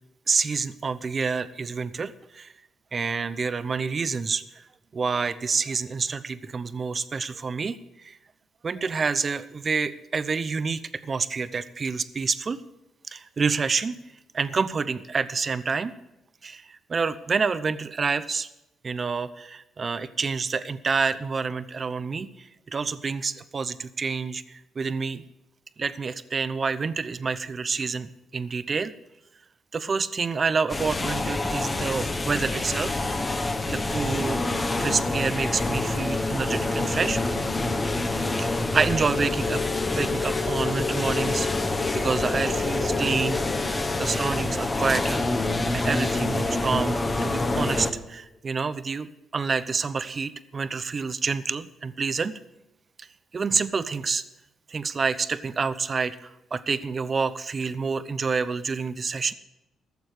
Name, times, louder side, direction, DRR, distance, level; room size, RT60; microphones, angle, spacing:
voice 1, 0.3-2.5 2.9-4.6 4.9-8.2 8.6-12.6 13.1-13.9 14.3-15.9 16.4-18.5 18.8-25.2 25.8-28.9 29.7-32.9 33.7-37.2 38.4-39.6 40.0-41.7 41.9-43.4 44.0-45.2 45.7-52.4 53.0-53.1 53.3-54.2 54.7-59.3, right 5 dB, 40° right, 14 dB, 0.8 m, -28 dB
sound 1, 30.7-47.9, left 2 dB, 20° left, 1.3 m, -27 dB
sound 2, 39.1-47.4, left 5 dB, 40° left, 2.2 m, -33 dB
14.0 x 7.0 x 8.1 m, 0.91 s
cardioid pair, 90°, 0 cm